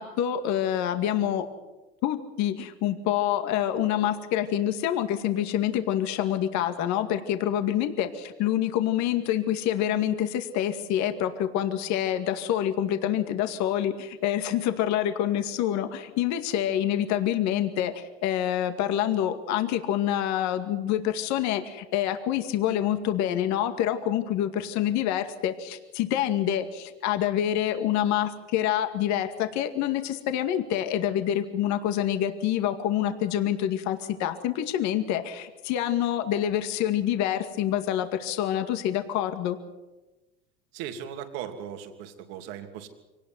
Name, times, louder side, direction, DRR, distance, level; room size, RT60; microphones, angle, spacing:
voice 1, 0.0-1.5 2.0-39.6, left 11 dB, 60° left, 8 dB, 2.2 m, -27 dB
voice 2, 40.7-42.9, right 9 dB, 70° right, 6 dB, 3.0 m, -38 dB
24.5 x 19.0 x 7.9 m, 1.1 s
supercardioid pair, 100°, 31 cm